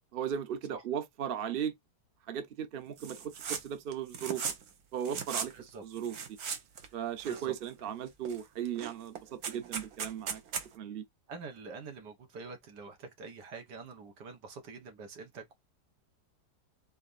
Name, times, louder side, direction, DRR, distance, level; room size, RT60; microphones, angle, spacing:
voice 1, 0.1-1.7 2.3-4.4 4.9-5.5 5.8-6.2 6.9-10.4 10.7-11.0, right 9 dB, 45° right, 0.9 m, -36 dB
sound 1, 3.0-3.6 3.9-4.7 5.0-5.5 6.0-6.9 7.2-7.8 8.2-8.4 8.7-10.7, right 6 dB, 65° right, 1.4 m, -38 dB
voice 2, 5.5-5.8 7.3-7.5 11.3-15.5, right 4 dB, 85° right, 1.9 m, -46 dB
4.3 x 3.9 x 2.6 m
omnidirectional pair, 1.8 m